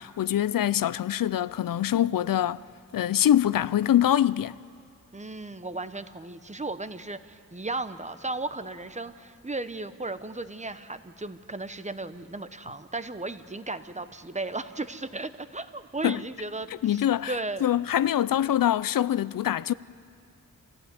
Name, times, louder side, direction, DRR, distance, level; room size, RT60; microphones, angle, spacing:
voice 1, 0.0-2.6 2.9-4.6 16.0-16.2 16.8-17.3 17.6-19.7, left 11 dB, 80° left, 0.5 m, -24 dB
voice 2, 5.1-17.7, right 2 dB, 20° right, 0.9 m, -35 dB
27.0 x 15.0 x 9.7 m
wide cardioid pair, 105°, 33 cm